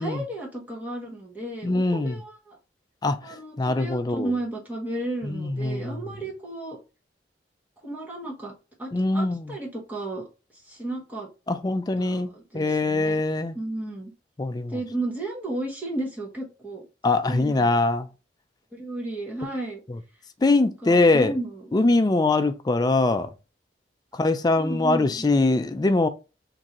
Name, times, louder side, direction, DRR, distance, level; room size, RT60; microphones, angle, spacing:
voice 1, 0.0-2.6 3.2-6.8 7.8-8.5 8.8-10.3 10.6-11.3 12.0-13.2 13.5-14.1 14.7-16.9 17.3-17.7 18.7-19.8 20.8-21.7 24.5-25.3, right 2 dB, 10° right, 1.0 m, -33 dB
voice 2, 1.6-2.2 3.0-3.2 3.6-4.3 5.2-6.0 8.9-9.5 11.5-13.6 14.4-14.7 17.0-18.1 19.9-20.0 20.4-21.3 21.7-23.3 24.1-26.1, left 2 dB, 20° left, 0.3 m, -22 dB
3.9 x 2.6 x 2.9 m
head